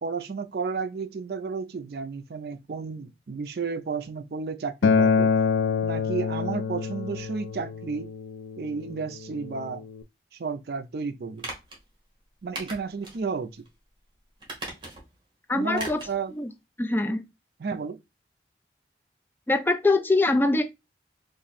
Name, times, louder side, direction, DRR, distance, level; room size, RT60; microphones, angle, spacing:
voice 1, 0.0-5.3 5.8-8.1 8.6-9.8 10.3-11.5 12.4-13.6 15.6-16.3 17.6-18.0, right 4 dB, 60° right, 0.4 m, -32 dB
Acoustic guitar, 4.8-10.0, left 5 dB, 90° left, 0.3 m, -26 dB
sound 1, 11.4-11.8 12.5-13.2 13.6-13.7 14.4-15.1 15.7-16.2 16.5-16.6, right 2 dB, 25° right, 1.1 m, -38 dB
voice 2, 15.5-16.0 16.3-16.5 16.8-17.2 19.5-20.6, left 2 dB, 10° left, 0.4 m, -23 dB
3.0 x 2.5 x 4.0 m
head